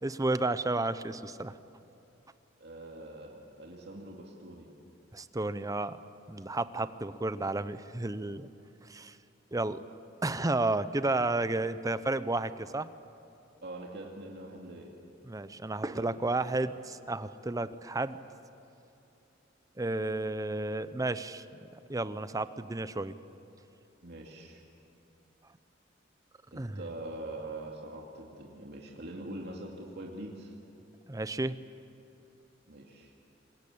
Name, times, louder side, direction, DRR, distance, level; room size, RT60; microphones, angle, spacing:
voice 1, 0.0-1.5 5.1-6.0 6.3-8.5 8.8-9.2 9.5-9.8 10.2-12.9 15.2-18.2 19.8-21.4 21.9-23.1 26.5-26.8 31.1-31.6, right 2 dB, 20° right, 13 dB, 0.7 m, -32 dB
voice 2, 2.6-4.7 13.6-14.9 15.9-16.1 24.0-24.6 26.5-30.5 32.7-33.1, right 1 dB, 60° right, -1 dB, 2.5 m, -43 dB
26.5 x 21.5 x 8.6 m, 2.8 s
head